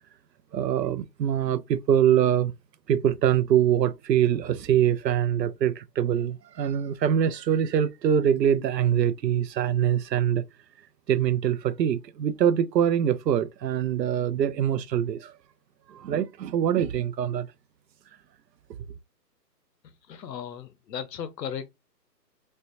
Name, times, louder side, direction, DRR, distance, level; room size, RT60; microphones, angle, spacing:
voice 1, 0.5-2.5 2.9-10.4 11.1-15.3 15.9-17.5, right 9 dB, 90° right, 0.6 m, -24 dB
voice 2, 19.8-21.7, left 8 dB, 80° left, 0.7 m, -36 dB
4.3 x 2.1 x 2.5 m
hypercardioid pair, 165°, 49 cm